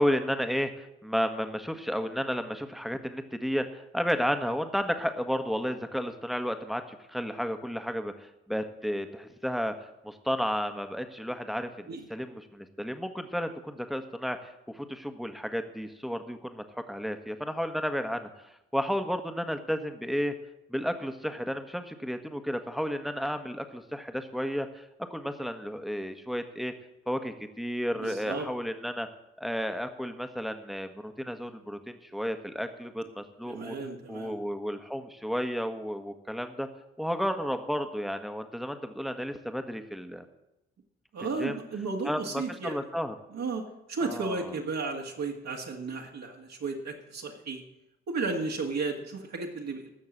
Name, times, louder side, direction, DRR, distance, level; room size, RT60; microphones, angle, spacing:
voice 1, 0.0-20.3 20.7-24.8 25.1-26.7 27.1-29.1 29.4-33.7 34.1-36.7 37.0-40.2 41.4-41.5 42.0-43.1 44.0-44.5, equal, ahead, 7 dB, 1.5 m, -32 dB
voice 2, 28.0-28.5 33.5-34.4 41.1-42.9 43.3-43.6 43.9-47.6 48.1-49.9, right 3 dB, 55° right, -1 dB, 2.1 m, -34 dB
15.0 x 6.4 x 7.5 m, 0.91 s
hypercardioid pair, 45°, 31 cm